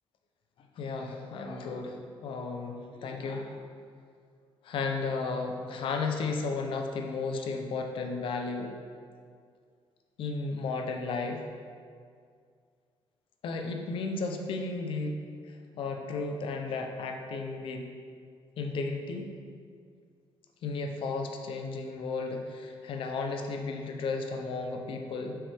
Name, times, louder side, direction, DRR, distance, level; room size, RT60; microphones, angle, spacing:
voice 1, 0.8-3.6 4.6-8.7 10.2-11.4 13.4-15.1 15.5-17.9 18.6-19.3 20.6-25.4, left 4 dB, 55° left, 3 dB, 0.6 m, -34 dB
5.9 x 4.8 x 3.4 m, 2.2 s
cardioid pair, 170°, 10 cm